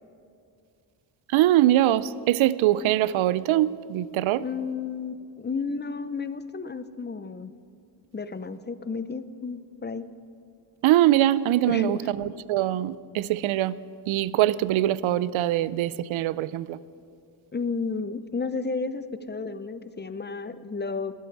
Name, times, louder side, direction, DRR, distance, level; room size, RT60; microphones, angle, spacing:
voice 1, 1.3-4.4 10.8-13.8 14.1-16.8, right 14 dB, 80° right, 19 dB, 0.5 m, -23 dB
voice 2, 4.3-7.5 8.1-10.1 11.7-12.1 17.5-21.1, left 4 dB, 20° left, 13 dB, 0.6 m, -32 dB
21.0 x 8.3 x 4.7 m, 2.4 s
cardioid pair, 55°, 47 cm